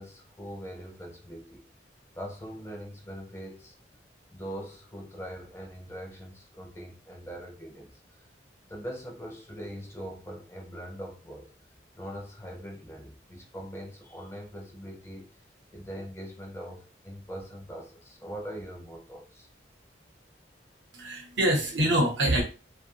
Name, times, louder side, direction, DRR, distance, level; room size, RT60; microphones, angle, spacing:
voice 1, 0.0-1.6 2.2-3.8 4.3-8.2 8.7-11.5 12.0-15.3 15.7-19.5, equal, 15° left, 1 dB, 0.5 m, -42 dB
voice 2, 20.9-22.4, right 1 dB, 75° right, 1 dB, 0.9 m, -25 dB
2.6 x 2.3 x 2.8 m, 0.34 s
head